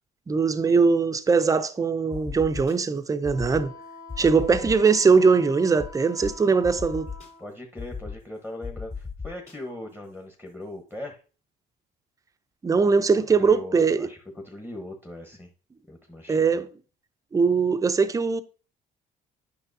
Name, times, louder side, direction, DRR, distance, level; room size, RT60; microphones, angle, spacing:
voice 1, 0.3-3.7 4.2-7.1 12.6-14.1 16.3-16.7 17.3-18.4, right 5 dB, 20° right, 0.5 m, -21 dB
sound 1, 2.1-2.7 3.2-3.6 4.1-5.0 5.8-5.9 6.2-6.3 6.6-7.3 7.8-8.1 8.6-9.5, left 5 dB, 45° left, 2.2 m, -35 dB
Wind instrument woodwind instrument, 3.3-7.5, left 3 dB, 60° left, 1.3 m, -46 dB
voice 2, 4.2-4.7 7.4-11.2 12.9-15.5 15.9-16.6, left 1 dB, 10° left, 1.0 m, -39 dB
8.9 x 5.4 x 2.7 m
cardioid pair, 110°, 17 cm